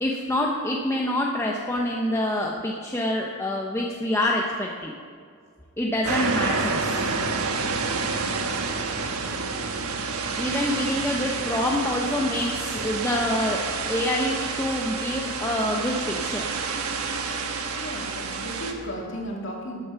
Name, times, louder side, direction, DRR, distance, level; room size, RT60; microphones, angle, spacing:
voice 1, 0.0-4.9 5.8-7.1 10.4-16.5, left 1 dB, 10° left, -1 dB, 0.7 m, -26 dB
sound 1, 6.0-18.7, right 4 dB, 85° right, 1.2 m, -29 dB
voice 2, 17.8-19.8, equal, 55° left, -2 dB, 2.5 m, -35 dB
12.5 x 9.2 x 5.8 m, 2.2 s
head